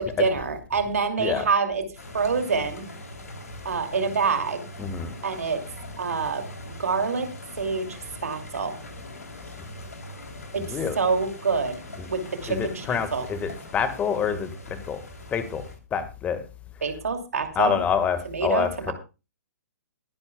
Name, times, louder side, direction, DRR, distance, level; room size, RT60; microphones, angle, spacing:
voice 1, 0.0-1.8 2.1-2.8 3.6-4.6 5.2-5.6 6.0-6.5 6.8-7.3 7.6-7.9 8.2-8.7 10.5-11.8 12.1-13.2 16.8-17.8 18.2-18.9, right 5 dB, 60° right, 6 dB, 2.6 m, -26 dB
sound 1, 2.0-15.8, left 1 dB, 65° left, 3.3 m, -42 dB
voice 2, 4.8-5.1 10.6-11.0 12.0-12.1 12.5-15.0 15.3-15.7 15.9-16.4 17.5-18.9, left 7 dB, 15° left, 11 dB, 1.6 m, -27 dB
21.5 x 10.5 x 2.3 m, 0.30 s
figure-of-eight pair, 120°, 9 cm